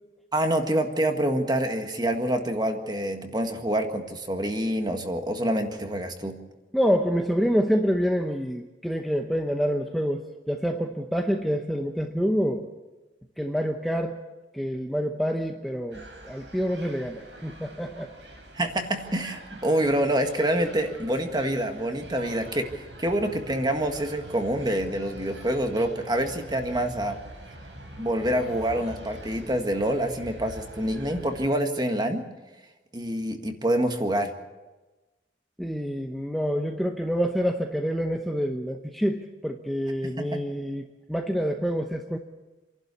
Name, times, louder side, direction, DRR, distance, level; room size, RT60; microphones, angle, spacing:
voice 1, 0.3-6.3 18.5-27.2 28.0-32.2 32.9-34.3 40.0-40.4, right 1 dB, 25° right, 5 dB, 1.7 m, -26 dB
voice 2, 6.7-12.7 13.4-14.2 14.5-18.1 35.6-42.2, equal, ahead, 3 dB, 0.8 m, -27 dB
sound 1, 15.9-31.5, right 1 dB, 85° right, 5.6 m, -44 dB
27.5 x 11.5 x 8.3 m, 1.2 s
head